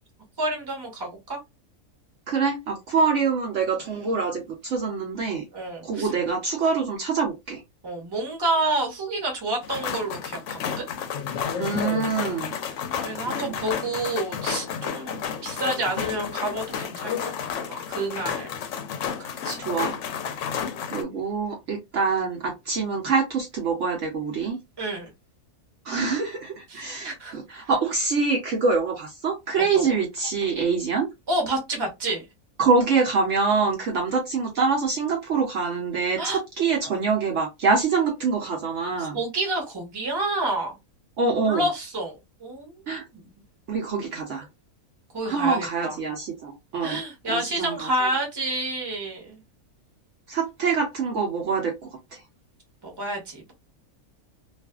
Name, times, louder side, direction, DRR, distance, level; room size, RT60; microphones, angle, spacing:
voice 1, 0.4-1.4 5.5-6.1 7.8-10.8 13.0-18.5 19.2-19.6 24.8-25.1 26.7-27.6 29.6-29.9 31.3-32.2 36.2-36.4 39.0-40.7 41.5-42.8 43.1-43.2 45.1-45.9 46.8-49.4 52.8-53.5, right 2 dB, 20° right, 0.8 m, -29 dB
voice 2, 2.3-5.4 5.8-7.6 11.6-12.6 13.2-13.6 19.6-20.0 20.9-24.6 25.8-31.1 32.6-39.2 41.2-41.7 42.9-43.0 43.7-44.5 45.2-47.0 47.3-48.1 50.3-51.7 52.1-52.2, right 4 dB, 65° right, 0.9 m, -25 dB
sound 1, 9.6-21.0, left 7 dB, 70° left, 0.8 m, -31 dB
2.5 x 2.4 x 2.2 m
omnidirectional pair, 1.5 m